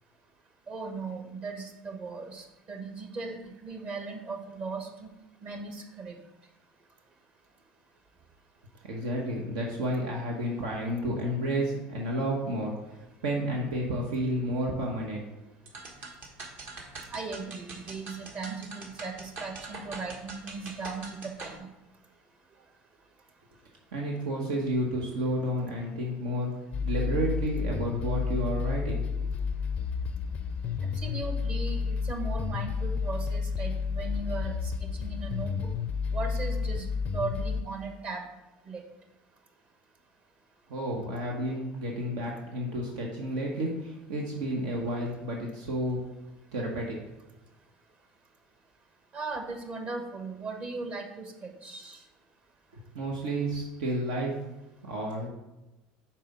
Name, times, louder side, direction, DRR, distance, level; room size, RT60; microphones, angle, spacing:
voice 1, 0.7-3.4 3.6-5.1 5.4-6.2 17.1-21.5 31.0-35.7 36.1-38.3 38.7-38.8 49.1-52.0, right 3 dB, 40° right, 4 dB, 1.2 m, -38 dB
voice 2, 8.8-15.2 23.9-26.5 26.8-29.0 40.7-46.0 46.5-47.0 52.7-54.3 54.9-55.3, equal, 85° right, -1 dB, 1.1 m, -31 dB
sound 1, 15.7-21.6, right 3 dB, 55° right, 1.4 m, -43 dB
sound 2, 26.7-37.6, left 5 dB, 40° left, 0.4 m, -31 dB
5.5 x 4.3 x 5.4 m, 1.0 s
supercardioid pair, 105°, 3 cm